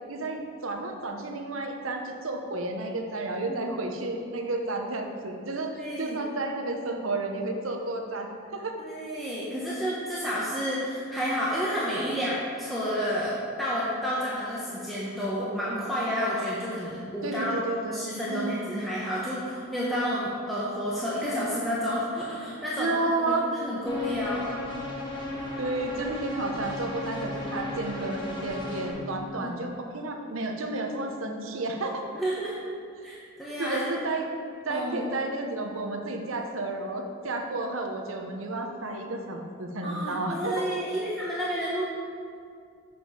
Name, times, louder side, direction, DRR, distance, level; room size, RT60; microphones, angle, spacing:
voice 1, 0.1-5.7 6.0-8.8 17.2-18.9 22.8-23.7 25.6-32.0 33.6-34.3 34.7-40.7, right 2 dB, 80° right, 3 dB, 0.9 m, -31 dB
voice 2, 5.8-6.2 8.8-17.6 17.9-23.0 23.3-24.5 29.3-29.5 32.1-32.6 33.0-33.8 34.7-35.1 39.8-41.9, equal, ahead, -9 dB, 0.9 m, -30 dB
sound 1, 23.8-28.9, left 2 dB, 20° left, 1.3 m, -35 dB
7.0 x 5.2 x 5.5 m, 2.3 s
head